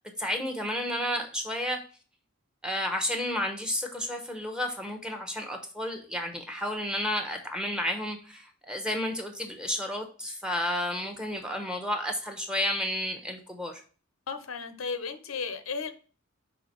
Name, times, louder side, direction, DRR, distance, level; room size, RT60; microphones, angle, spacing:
voice 1, 0.2-1.8 2.6-13.8, left 1 dB, 5° right, 0.9 m, -31 dB
voice 2, 14.3-15.9, left 5 dB, 85° left, 0.8 m, -34 dB
5.8 x 3.6 x 5.2 m
head